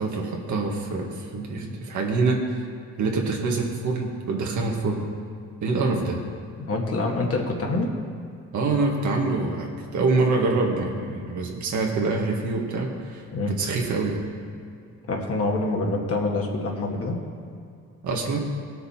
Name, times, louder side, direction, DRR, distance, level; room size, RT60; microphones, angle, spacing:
voice 1, 0.0-2.6 3.0-5.1 5.6-6.2 8.5-14.2 18.0-18.4, right 3 dB, 70° right, 0 dB, 1.9 m, -25 dB
voice 2, 6.6-7.9 13.3-13.5 15.1-17.2, left 2 dB, 50° left, 0 dB, 1.9 m, -26 dB
18.5 x 6.6 x 4.4 m, 2.4 s
cardioid pair, 90°, 30 cm